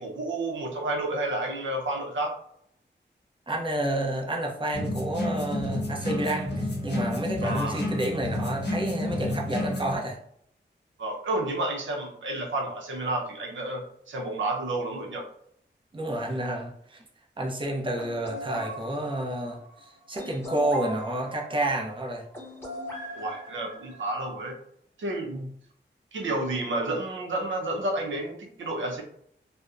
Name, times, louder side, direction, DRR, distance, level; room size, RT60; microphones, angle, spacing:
voice 1, 0.0-2.4 7.4-7.8 11.0-15.3 23.1-24.6 25.0-25.4 26.1-29.0, right 2 dB, 90° right, 1 dB, 0.6 m, -30 dB
voice 2, 3.5-10.2 15.9-17.0 17.4-22.2 25.3-25.5, right 1 dB, 25° right, -1 dB, 0.6 m, -30 dB
sound 1, 4.7-10.0, left 1 dB, 65° left, 0.7 m, -30 dB
sound 2, 18.0-24.2, equal, 15° left, 0.8 m, -40 dB
2.6 x 2.0 x 2.3 m, 0.67 s
wide cardioid pair, 75°, 19 cm